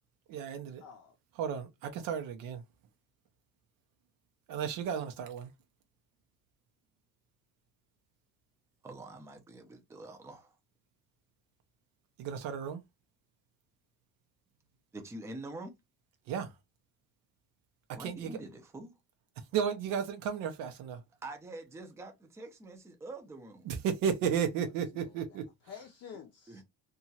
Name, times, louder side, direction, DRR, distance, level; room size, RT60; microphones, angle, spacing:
voice 1, 0.3-0.8 1.4-2.6 4.5-5.5 12.2-12.8 16.3-16.5 18.0-18.3 19.5-21.0 23.7-25.5, right 7 dB, 85° right, 0.6 m, -33 dB
voice 2, 0.8-1.1 24.6-26.6, left 7 dB, 50° left, 0.5 m, -51 dB
voice 3, 8.8-10.6 14.9-15.7 17.9-18.9 21.2-23.7 26.5-26.6, right 2 dB, 10° right, 0.4 m, -45 dB
2.8 x 2.3 x 2.7 m
cardioid pair, 155°, 32 cm